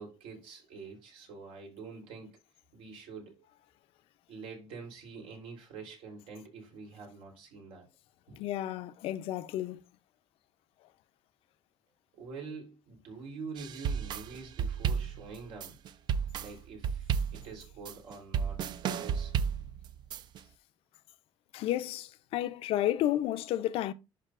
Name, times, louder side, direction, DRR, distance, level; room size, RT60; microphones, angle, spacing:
voice 1, 0.0-2.4 2.7-3.4 4.3-7.9 8.3-8.4 12.1-15.8 16.4-19.4, right 4 dB, 80° right, 3.6 m, -46 dB
voice 2, 8.4-9.8 21.5-23.9, left 13 dB, 75° left, 0.6 m, -31 dB
sound 1, 13.6-20.4, right 7 dB, 50° right, 0.4 m, -33 dB
11.0 x 5.5 x 2.5 m
cardioid pair, 165°, 10 cm